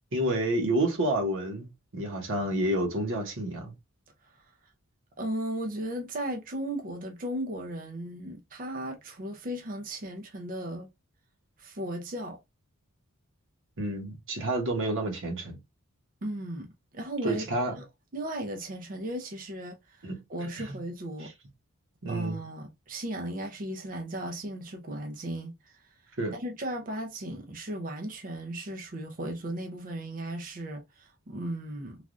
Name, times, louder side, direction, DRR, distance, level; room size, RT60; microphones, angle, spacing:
voice 1, 0.1-1.7 1.9-3.7 13.8-15.6 17.2-17.7 20.0-20.2 20.6-20.8 21.2-21.3 22.0-22.4 26.2-26.3, right 1 dB, 60° right, 1.1 m, -29 dB
voice 2, 5.2-10.9 11.6-12.4 16.2-16.7 16.9-17.5 17.8-17.9 18.1-21.3 22.1-25.5 26.3-32.0, right 1 dB, 40° right, 0.6 m, -36 dB
3.3 x 2.4 x 2.5 m
head